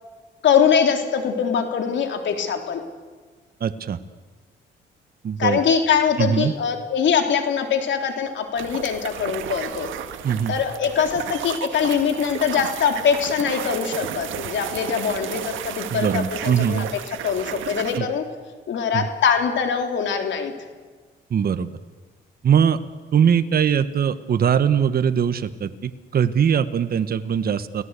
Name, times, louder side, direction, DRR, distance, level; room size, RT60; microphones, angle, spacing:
voice 1, 0.4-2.8 5.4-9.9 10.5-18.2 18.7-20.5, left 7 dB, 70° left, 5 dB, 3.5 m, -22 dB
voice 2, 3.6-4.0 5.2-5.6 6.2-6.5 10.2-10.5 15.9-16.9 18.0-18.1 18.9-19.1 21.3-21.7 22.4-22.8 23.1-27.8, right 8 dB, 50° right, 11 dB, 1.2 m, -21 dB
sound 1, 8.6-18.0, right 10 dB, 80° right, 1.7 m, -33 dB
29.0 x 18.0 x 8.3 m, 1.4 s
cardioid pair, 90°, 20 cm